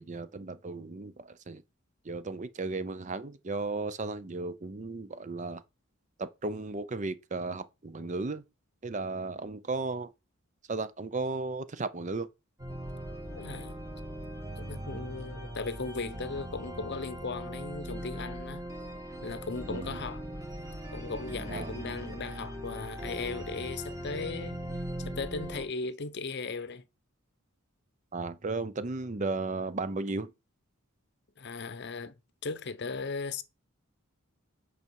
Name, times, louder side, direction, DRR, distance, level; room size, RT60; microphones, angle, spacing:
voice 1, 0.0-1.6 2.0-5.6 6.2-8.4 8.8-10.1 10.7-12.3 19.7-20.0 21.5-21.7 28.1-30.3, right 3 dB, 35° right, 0.6 m, -35 dB
sound 1, 12.6-25.6, equal, 15° right, 1.9 m, -40 dB
voice 2, 13.3-13.7 14.6-18.6 19.2-20.2 20.9-24.6 25.0-26.8 31.4-32.2 32.4-33.4, left 4 dB, 50° left, 0.7 m, -37 dB
8.3 x 5.6 x 4.6 m
head